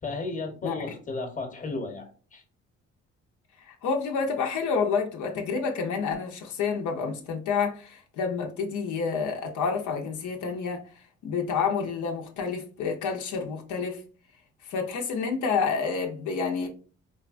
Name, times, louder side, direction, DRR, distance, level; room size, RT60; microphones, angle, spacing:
voice 1, 0.0-2.4, left 3 dB, 25° left, 1.0 m, -34 dB
voice 2, 3.7-10.8 11.2-14.0 14.7-16.7, left 5 dB, 75° left, 0.7 m, -29 dB
3.9 x 2.2 x 2.4 m
cardioid pair, 90°, 30 cm